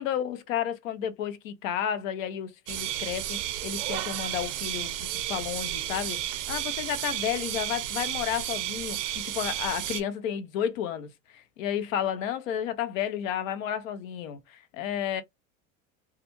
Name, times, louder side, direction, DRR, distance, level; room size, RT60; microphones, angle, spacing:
voice 1, 0.0-15.2, left 9 dB, 80° left, 0.6 m, -32 dB
sound 1, 2.7-10.0, right 12 dB, 70° right, 0.6 m, -32 dB
2.4 x 2.2 x 2.9 m
hypercardioid pair, 95°, 39 cm